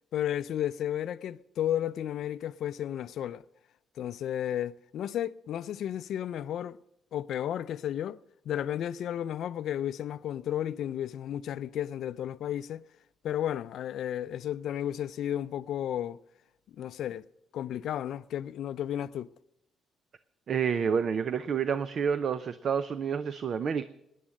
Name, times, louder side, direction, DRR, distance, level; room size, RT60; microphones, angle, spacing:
voice 1, 0.1-3.4 4.0-6.8 7.1-8.2 8.5-12.9 13.2-16.2 16.7-17.3 17.5-19.3, left 11 dB, 75° left, 0.4 m, -33 dB
voice 2, 20.5-23.8, right 7 dB, 55° right, 0.6 m, -29 dB
19.0 x 10.0 x 6.4 m
cardioid pair, 90°, 0 cm